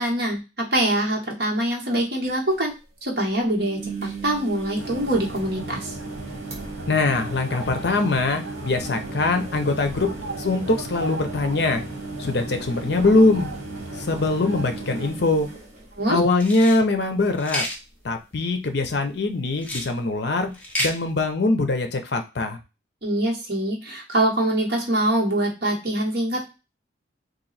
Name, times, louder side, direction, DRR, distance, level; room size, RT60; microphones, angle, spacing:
voice 1, 0.0-2.7 3.0-3.8 4.2-5.9 16.0-16.2 23.0-26.4, right 1 dB, 55° right, -2 dB, 1.4 m, -24 dB
sound 1, 2.2-2.3 2.5-2.6 3.5-16.6 17.0-17.4 17.7-17.8 19.6-19.7, right 4 dB, 35° right, 1.1 m, -37 dB
sound 2, 4.8-15.1, right 1 dB, 85° right, 1.4 m, -36 dB
voice 2, 6.9-10.1 10.4-11.8 12.2-13.5 14.0-15.5 16.1-17.7 18.0-20.5 20.8-22.6, left 2 dB, 55° left, 6 dB, 0.6 m, -22 dB
sound 3, 16.4-16.8 17.4-17.8 19.6-19.9 20.5-20.9, left 1 dB, 5° left, 0.6 m, -29 dB
3.0 x 2.6 x 4.0 m, 0.28 s
head